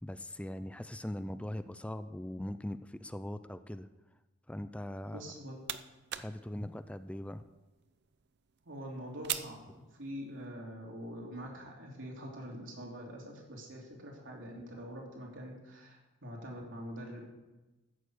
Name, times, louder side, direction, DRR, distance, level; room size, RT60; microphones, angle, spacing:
voice 1, 0.0-3.9 4.5-5.2 6.2-7.4, left 1 dB, 5° left, 11 dB, 0.4 m, -40 dB
sound 1, 5.1-10.5, right 11 dB, 60° right, 0.6 m, -45 dB
voice 2, 5.1-5.6 8.6-17.3, equal, 75° right, -1 dB, 3.2 m, -44 dB
14.0 x 6.7 x 8.0 m, 1.1 s
head